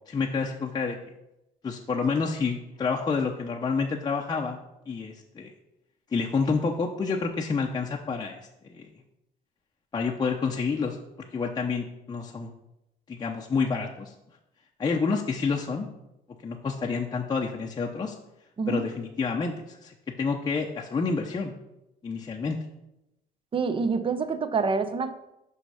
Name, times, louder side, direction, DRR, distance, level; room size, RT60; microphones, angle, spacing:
voice 1, 0.1-1.0 1.6-4.6 4.9-5.5 6.1-8.4 8.7-8.9 9.9-11.0 11.3-12.5 13.1-14.1 14.8-15.9 16.4-18.1 18.7-21.6 22.0-22.6, left 4 dB, 25° left, 0 dB, 0.7 m, -28 dB
voice 2, 23.5-25.1, right 4 dB, 30° right, 11 dB, 0.7 m, -26 dB
6.0 x 5.5 x 5.6 m, 0.90 s
cardioid pair, 110°, 17 cm